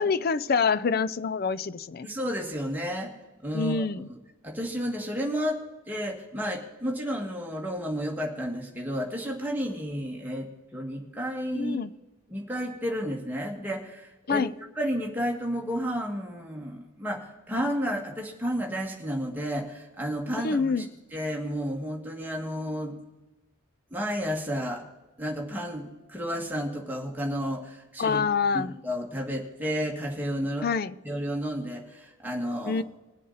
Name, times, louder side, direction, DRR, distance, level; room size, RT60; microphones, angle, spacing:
voice 1, 0.0-2.1 3.5-4.1 11.5-11.9 14.3-14.5 20.4-20.9 28.0-28.7 30.6-30.9 32.6-32.8, left 5 dB, 45° left, 0.4 m, -26 dB
voice 2, 2.0-3.1 3.4-4.2 4.4-11.9 12.3-14.4 14.8-20.8 21.1-23.0 23.9-24.8 25.2-28.2 28.5-30.7 31.0-32.8, equal, 10° right, 1.8 m, -32 dB
22.0 x 7.5 x 4.1 m
head